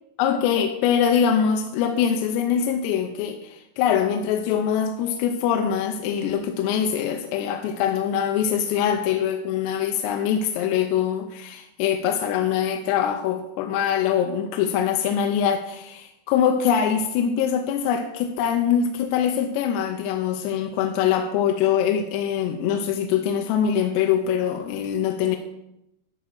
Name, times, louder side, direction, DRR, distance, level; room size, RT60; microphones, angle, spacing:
voice 1, 0.2-25.4, left 8 dB, 80° left, 4 dB, 2.6 m, -23 dB
13.0 x 4.6 x 6.3 m, 0.84 s
omnidirectional pair, 5.2 m